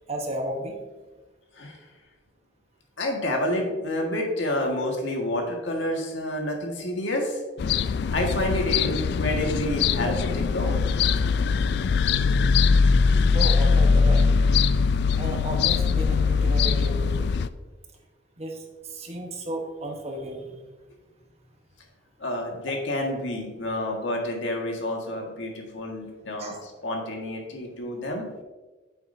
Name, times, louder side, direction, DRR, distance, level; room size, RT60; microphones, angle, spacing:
voice 1, 0.1-0.8 13.3-14.2 15.2-17.3 18.4-18.6 18.9-20.6 23.8-24.0 26.4-26.6, right 1 dB, 35° right, 2 dB, 1.1 m, -33 dB
voice 2, 3.0-7.4 8.1-10.8 22.2-28.3, left 1 dB, 85° left, 1 dB, 1.7 m, -29 dB
sound 1, 7.6-17.5, left 5 dB, 60° left, 0.3 m, -21 dB
9.7 x 7.0 x 2.7 m, 1.2 s
head